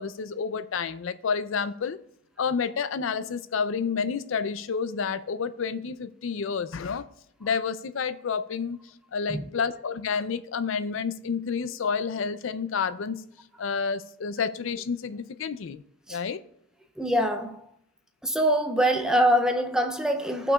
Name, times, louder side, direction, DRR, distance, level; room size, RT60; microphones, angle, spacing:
voice 1, 0.0-2.0 2.4-7.0 7.4-8.8 9.1-13.2 13.6-15.8 16.1-16.4, left 6 dB, 70° left, 0.4 m, -29 dB
voice 2, 17.0-17.7 18.2-20.5, equal, 5° right, 0.5 m, -24 dB
17.0 x 5.9 x 2.3 m
head